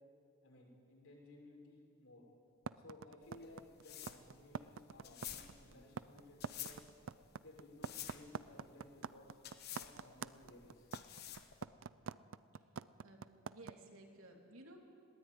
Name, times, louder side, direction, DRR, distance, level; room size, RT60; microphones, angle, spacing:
voice 1, 0.4-2.2 2.7-6.9 7.4-9.4 9.7-10.9, left 2 dB, 80° left, -2 dB, 6.6 m, -58 dB
sound 1, 2.7-13.7, right 6 dB, 65° right, 0.5 m, -45 dB
sound 2, 3.2-11.6, left 10 dB, 50° left, 1.3 m, -51 dB
voice 2, 13.0-14.8, right 2 dB, 85° right, 1 dB, 3.2 m, -57 dB
20.5 x 17.0 x 9.5 m, 2.4 s
head